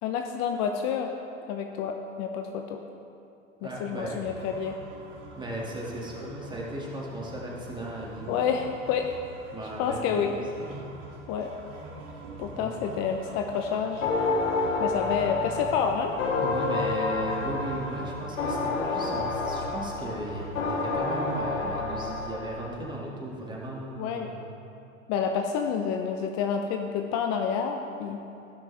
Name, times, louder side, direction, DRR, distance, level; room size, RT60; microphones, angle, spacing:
voice 1, 0.0-1.1 1.5-2.8 3.8-4.8 8.3-9.1 9.8-10.3 11.3-11.5 12.4-14.1 14.8-16.1 24.0-24.3 25.1-28.2, left 7 dB, 40° left, 4 dB, 0.7 m, -28 dB
voice 2, 3.6-4.2 5.4-8.5 9.5-10.9 12.5-12.7 16.4-24.5, right 1 dB, 10° right, -3 dB, 2.2 m, -36 dB
sound 1, 4.0-21.4, right 3 dB, 50° right, 2.6 m, -45 dB
sound 2, 14.0-22.7, left 3 dB, 75° left, 1.6 m, -29 dB
17.5 x 6.1 x 3.4 m, 2.7 s
hypercardioid pair, 105°, 39 cm